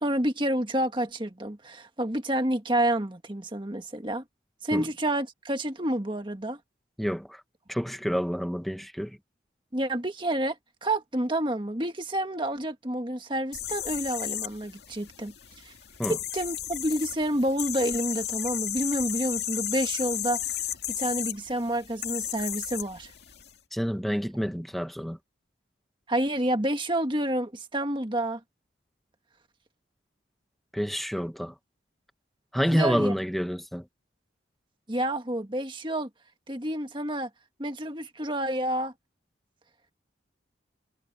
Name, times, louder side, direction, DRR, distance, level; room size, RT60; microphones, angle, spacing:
voice 1, 0.0-4.2 4.6-6.6 9.7-10.5 10.8-15.3 15.6-15.7 16.1-23.1 26.1-28.4 32.7-33.1 34.9-36.1 36.5-37.3 37.6-38.9, right 1 dB, 25° right, 1.7 m, -29 dB
voice 2, 7.0-7.4 7.7-9.2 16.0-16.2 23.7-25.2 30.7-31.5 32.5-33.8, equal, ahead, 1.1 m, -28 dB
sound 1, 13.5-23.5, left 12 dB, 60° left, 2.3 m, -34 dB
head